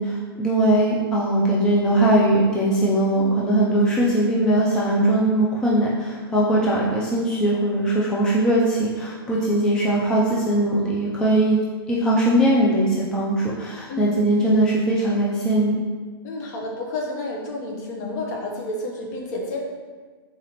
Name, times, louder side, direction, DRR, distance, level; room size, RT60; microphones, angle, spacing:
voice 1, 0.0-11.6 11.9-15.8, right 1 dB, 5° left, -5 dB, 0.3 m, -20 dB
voice 2, 3.1-3.4 6.5-6.8 13.9-14.3 16.2-19.6, left 2 dB, 40° left, 0 dB, 0.8 m, -31 dB
4.0 x 2.9 x 4.0 m, 1.4 s
hypercardioid pair, 150°, 13 cm